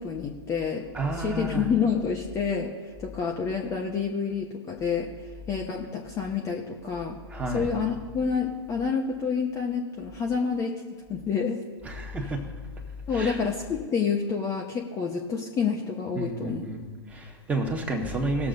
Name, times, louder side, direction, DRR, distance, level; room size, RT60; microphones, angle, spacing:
voice 1, 0.0-0.8 1.1-5.1 5.5-7.2 7.5-10.8 11.1-11.6 13.1-16.6, left 6 dB, 20° left, 0 dB, 0.9 m, -28 dB
voice 2, 0.9-1.7 7.3-7.7 11.8-12.4 13.1-13.4 16.1-18.5, right 2 dB, 10° right, 1 dB, 1.7 m, -31 dB
19.5 x 7.0 x 2.6 m, 1.5 s
figure-of-eight pair, 110°, 15 cm